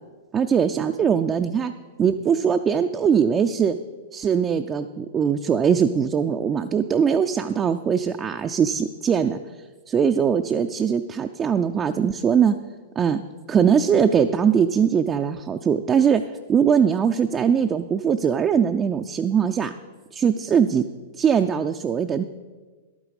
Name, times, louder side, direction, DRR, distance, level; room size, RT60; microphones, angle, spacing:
voice 1, 0.3-1.7 2.0-3.8 4.1-9.4 9.9-12.6 13.0-13.2 13.5-16.2 16.5-19.7 20.1-20.8 21.2-22.2, right 7 dB, 20° right, 5 dB, 0.4 m, -21 dB
11.5 x 9.0 x 4.9 m, 1.4 s
hypercardioid pair, 110°, 0 cm